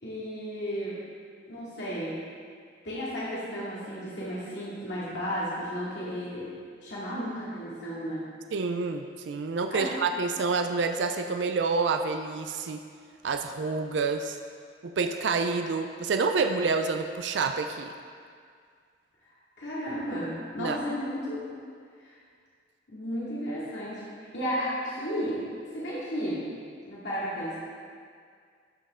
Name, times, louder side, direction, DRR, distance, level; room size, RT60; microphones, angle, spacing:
voice 1, 0.0-1.0 1.5-2.2 2.8-6.5 6.8-8.3 9.7-9.9 19.6-21.4 22.0-22.1 22.9-24.0 24.3-25.4 25.7-26.5 26.9-27.6, equal, 80° left, -9 dB, 2.4 m, -33 dB
voice 2, 8.5-12.8 13.2-14.4 15.0-17.9 20.6-20.8, right 4 dB, 85° right, 6 dB, 0.4 m, -28 dB
13.0 x 5.4 x 3.7 m, 2.1 s
head